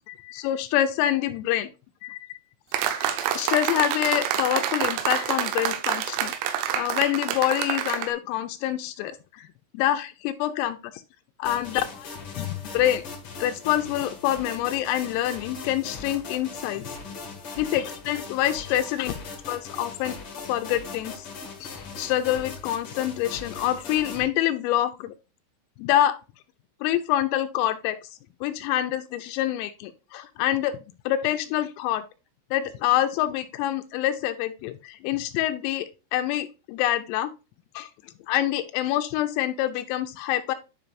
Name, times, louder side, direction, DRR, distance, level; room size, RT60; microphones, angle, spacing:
voice 1, 0.1-1.7 2.0-2.2 3.0-6.3 6.7-9.5 9.7-10.7 11.4-12.1 12.4-13.0 13.4-17.0 17.6-19.1 19.5-20.2 20.4-21.3 21.6-25.1 25.8-26.2 26.8-28.0 28.4-30.8 31.1-32.0 32.5-37.3 37.8-37.9 38.3-40.6, left 12 dB, 85° left, 7 dB, 3.2 m, -26 dB
sound 1, 2.7-8.1, right 10 dB, 90° right, 3.7 m, -27 dB
sound 2, 11.4-24.2, left 4 dB, 65° left, 1.3 m, -39 dB
10.5 x 5.2 x 2.5 m, 0.30 s
omnidirectional pair, 6.0 m